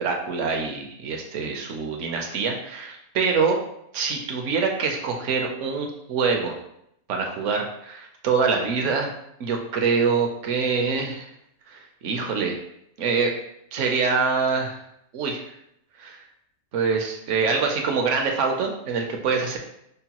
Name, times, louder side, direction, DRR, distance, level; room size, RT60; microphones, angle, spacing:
voice 1, 0.0-3.6 3.9-6.6 7.1-9.1 9.4-11.3 11.7-12.6 13.0-13.3 13.7-14.8 15.1-15.4 16.0-16.2 16.7-19.6, right 5 dB, 65° right, 2 dB, 0.9 m, -25 dB
5.4 x 2.2 x 2.9 m, 0.77 s
omnidirectional pair, 1.4 m